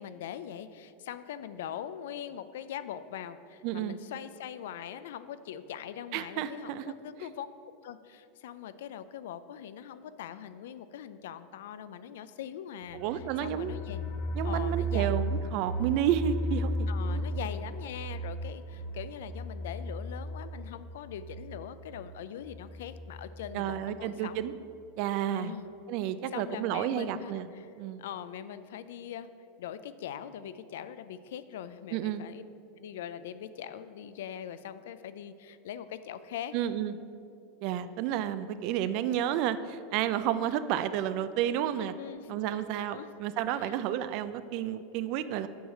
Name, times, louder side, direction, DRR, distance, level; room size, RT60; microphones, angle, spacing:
voice 1, 0.0-7.5 7.8-14.0 14.4-15.2 16.9-24.4 25.3-25.7 26.3-27.7 28.0-29.3 29.6-32.4 32.8-36.5 42.0-42.4 42.8-43.1 43.6-43.8, left 9 dB, 80° left, 13 dB, 0.4 m, -42 dB
voice 2, 3.6-4.0 6.1-6.9 12.9-13.8 14.4-17.3 23.5-24.5 25.0-25.5 25.9-27.5 27.8-28.0 31.9-32.2 36.5-37.0 37.6-41.9 42.3-45.5, right 10 dB, 55° right, 13 dB, 0.4 m, -31 dB
sound 1, 12.8-23.5 23.8-23.9 24.3-24.4, right 1 dB, 55° left, 0.8 m, -35 dB
7.8 x 4.8 x 6.4 m, 2.6 s
supercardioid pair, 135°, 0 cm